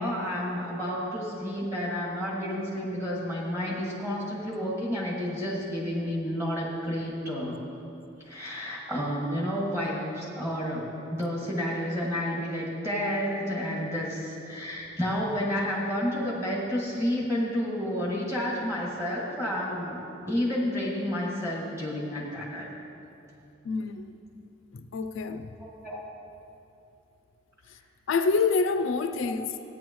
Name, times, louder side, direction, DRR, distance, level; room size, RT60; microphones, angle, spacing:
voice 1, 0.0-7.6 8.3-22.7 25.6-26.0, equal, 15° right, -6 dB, 2.1 m, -30 dB
voice 2, 23.6-24.1 24.7-25.5 28.1-29.5, left 4 dB, 70° left, 8 dB, 0.4 m, -27 dB
15.0 x 9.4 x 3.1 m, 2.8 s
head